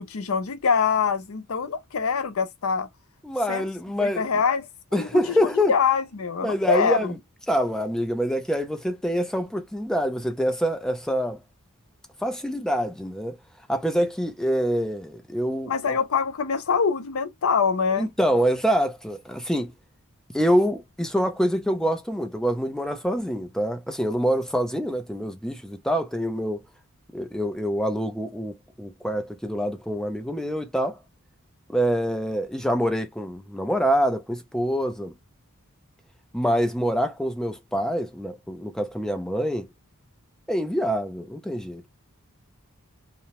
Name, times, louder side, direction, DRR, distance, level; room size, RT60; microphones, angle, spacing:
voice 1, 0.0-2.9 3.5-3.6 4.0-4.7 5.0-7.1 15.7-18.1, left 6 dB, 70° left, 0.5 m, -24 dB
voice 2, 3.2-4.3 4.9-5.8 6.4-7.2 7.5-11.4 12.2-13.4 13.7-15.7 18.0-19.7 20.3-26.6 27.1-31.0 31.7-35.1 36.3-39.7 40.5-41.9, equal, 5° left, 0.4 m, -25 dB
2.8 x 2.0 x 2.9 m
head